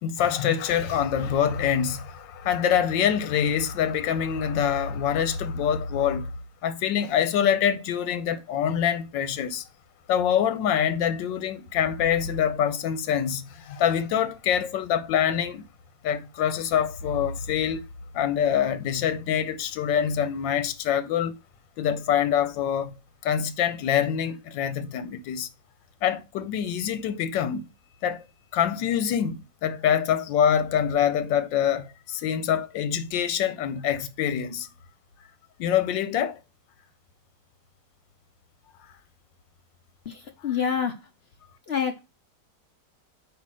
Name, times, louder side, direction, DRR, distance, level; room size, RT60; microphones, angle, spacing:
voice 1, 0.0-6.3 6.6-9.6 10.1-15.6 16.0-17.8 18.1-21.4 21.8-22.9 23.2-25.5 26.0-27.7 28.0-28.3 28.5-34.7 35.6-36.4, left 9 dB, 85° left, 1.4 m, -25 dB
voice 2, 40.1-41.1 41.7-42.0, left 7 dB, 60° left, 0.6 m, -27 dB
8.3 x 2.8 x 6.1 m
omnidirectional pair, 2.0 m